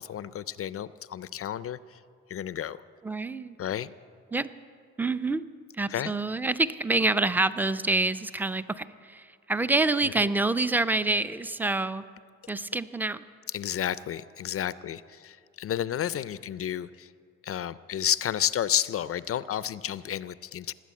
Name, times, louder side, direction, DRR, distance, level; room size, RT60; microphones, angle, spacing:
voice 1, 0.0-2.0 2.3-2.8 3.6-3.9 5.9-6.1 10.2-10.3 13.5-17.1 17.4-20.7, left 10 dB, 50° left, 17 dB, 0.5 m, -31 dB
voice 2, 3.0-3.6 4.3-4.5 5.0-5.4 5.8-12.0 12.5-13.2, right 2 dB, 5° right, 13 dB, 0.5 m, -27 dB
18.5 x 8.3 x 8.4 m, 2.2 s
cardioid pair, 90°, 30 cm